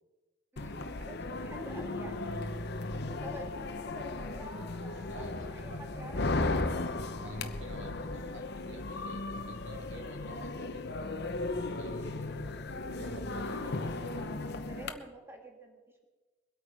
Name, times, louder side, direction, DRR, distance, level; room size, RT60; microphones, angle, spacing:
voice 1, 0.5-6.7 14.7-16.0, right 1 dB, 15° right, 2 dB, 1.9 m, -49 dB
sound 1, 0.6-14.9, left 2 dB, 60° left, 0.9 m, -36 dB
voice 2, 5.1-5.8 7.2-12.5 12.9-14.3, right 1 dB, 75° right, 3 dB, 2.2 m, -50 dB
22.5 x 8.7 x 5.2 m, 1.2 s
head